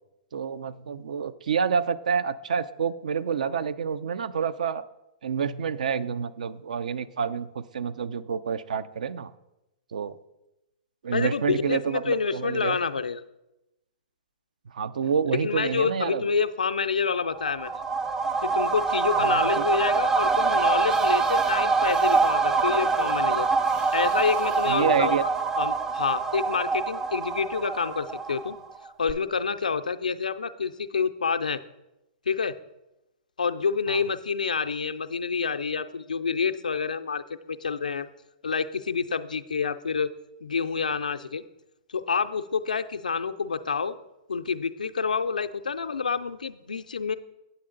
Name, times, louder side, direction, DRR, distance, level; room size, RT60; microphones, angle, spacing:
voice 1, 0.3-4.8 5.2-9.3 9.9-10.2 11.0-12.8 14.7-16.2 19.2-19.7 24.6-25.2 33.9-34.0, right 6 dB, 70° right, 14 dB, 0.4 m, -28 dB
voice 2, 11.1-13.2 15.4-17.7 18.4-23.5 23.9-25.3 25.6-28.6 29.0-31.6 32.3-32.5 33.4-38.1 38.4-40.1 40.4-41.4 41.9-44.0 44.3-47.2, left 5 dB, 90° left, 10 dB, 0.4 m, -28 dB
sound 1, 17.3-28.8 29.1-29.2, right 4 dB, 10° right, 0.4 m, -25 dB
sound 2, 20.9-25.5, right 6 dB, 30° right, 0.8 m, -44 dB
8.6 x 7.8 x 3.8 m, 0.94 s
hypercardioid pair, 120°, 4 cm